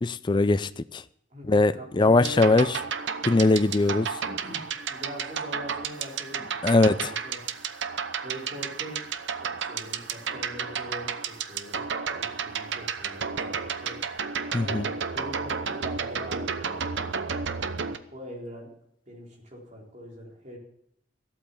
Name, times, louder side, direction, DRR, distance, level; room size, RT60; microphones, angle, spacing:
voice 1, 0.0-1.0 1.5-2.7 3.3-4.2 6.6-7.1 14.5-14.9, left 2 dB, 25° left, 0.4 m, -21 dB
voice 2, 1.3-2.8 4.2-4.6 4.9-7.4 8.2-9.1 9.4-13.9 14.4-14.8 15.1-17.1 17.6-18.7 19.1-20.6, equal, 35° right, 4.1 m, -42 dB
sound 1, 2.2-18.0, right 6 dB, 65° right, 0.8 m, -32 dB
14.5 x 8.5 x 7.1 m
head